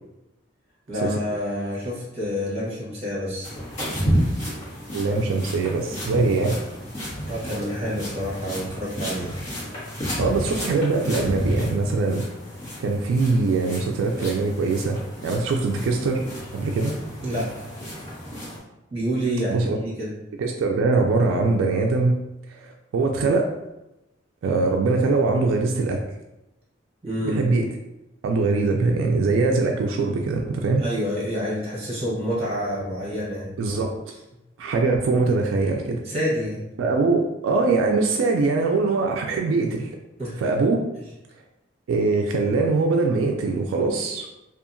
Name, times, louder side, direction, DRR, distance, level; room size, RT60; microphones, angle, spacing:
voice 1, 0.9-3.6 4.1-4.2 7.3-9.3 17.2-17.6 18.9-20.1 27.0-27.4 30.8-33.5 36.0-36.6 40.2-40.5, equal, 35° right, -6 dB, 1.0 m, -28 dB
sound 1, 3.4-18.6, equal, 35° left, 1.1 m, -31 dB
voice 2, 4.9-6.6 10.2-12.2 12.8-16.2 16.5-17.0 19.5-19.8 20.4-22.2 22.5-23.5 24.4-26.0 27.2-27.7 28.2-30.9 33.6-33.9 34.6-36.0 36.8-39.9 40.4-40.8 41.9-44.3, right 3 dB, 85° right, 2 dB, 0.3 m, -22 dB
2.7 x 2.4 x 2.5 m, 0.94 s
head